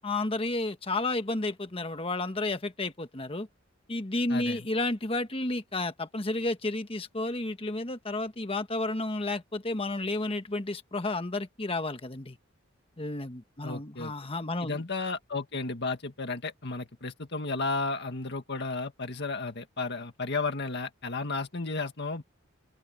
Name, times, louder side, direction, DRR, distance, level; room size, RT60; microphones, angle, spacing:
voice 1, 0.0-3.5 3.9-12.4 13.0-14.8, left 2 dB, 30° left, 1.3 m, -31 dB
voice 2, 4.3-4.7 13.6-14.1 14.6-22.2, left 3 dB, 55° left, 2.0 m, -33 dB
open air
head